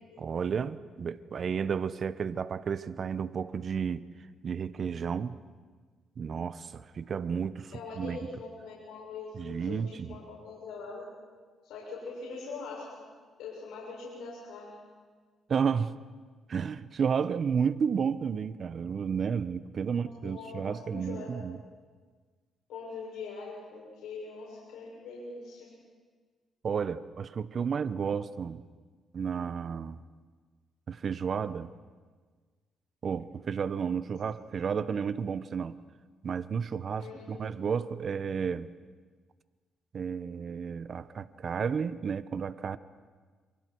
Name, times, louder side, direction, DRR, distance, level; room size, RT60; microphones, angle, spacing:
voice 1, 0.2-4.1 4.4-5.4 6.2-8.2 9.3-10.2 15.5-15.9 16.5-21.6 26.6-28.6 29.1-30.0 30.9-31.7 33.0-35.8 36.2-38.7 39.9-42.8, right 6 dB, 50° right, 14 dB, 0.9 m, -32 dB
voice 2, 7.7-11.1 11.6-13.0 13.4-14.8 19.9-21.3 22.7-25.7 37.0-37.5, left 4 dB, 90° left, -5 dB, 6.8 m, -42 dB
30.0 x 28.0 x 4.7 m, 1.5 s
cardioid pair, 90°, 0 cm